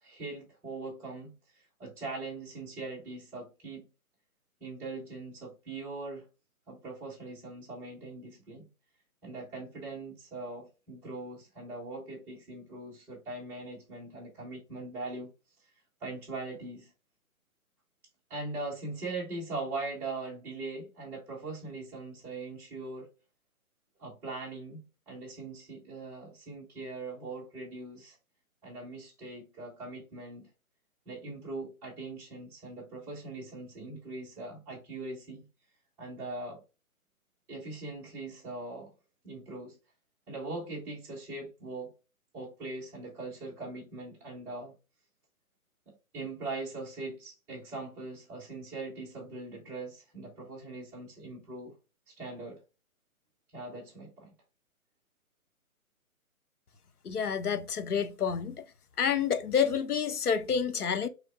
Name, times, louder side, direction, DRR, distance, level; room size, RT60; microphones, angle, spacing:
voice 1, 0.0-1.3 1.8-3.8 4.6-6.2 6.7-8.7 9.2-15.3 16.0-16.9 18.3-23.1 24.0-24.8 25.1-28.2 28.6-30.5 31.1-35.4 36.0-36.6 37.5-38.9 39.2-39.8 40.3-41.9 42.3-44.7 45.9-51.7 52.1-52.6 53.5-54.3, right 2 dB, 5° right, 0.8 m, -41 dB
voice 2, 57.0-58.6 59.0-61.1, left 7 dB, 85° left, 0.8 m, -29 dB
4.7 x 3.4 x 2.4 m
figure-of-eight pair, 150°, 44 cm